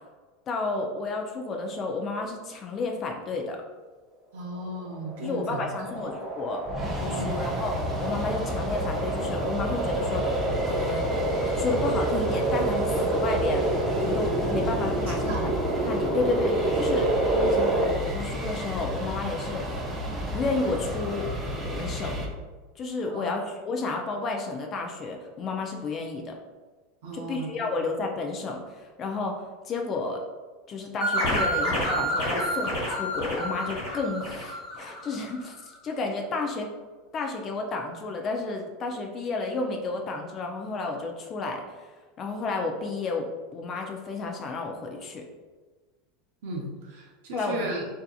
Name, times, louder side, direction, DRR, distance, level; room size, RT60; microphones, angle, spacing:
voice 1, 0.5-3.6 5.2-6.6 7.0-7.7 8.0-11.0 11.5-13.7 13.9-19.8 20.3-21.3 21.6-22.2 22.8-26.3 27.1-29.4 29.7-30.2 30.7-36.7 37.1-41.9 42.2-43.3 43.5-45.2 47.3-47.7, left 3 dB, 35° left, 2 dB, 0.4 m, -31 dB
voice 2, 4.3-6.1 7.1-7.3 15.3-15.5 23.1-23.3 27.0-28.0 46.4-47.9, right 1 dB, 75° right, -1 dB, 0.5 m, -35 dB
sound 1, 4.7-17.9, right 2 dB, 40° right, 1.1 m, -28 dB
sound 2, 6.6-22.3, equal, 15° right, 0.5 m, -32 dB
sound 3, 31.0-35.3, equal, 60° left, 1.4 m, -29 dB
2.6 x 2.4 x 2.3 m, 1.3 s
hypercardioid pair, 100°, 0 cm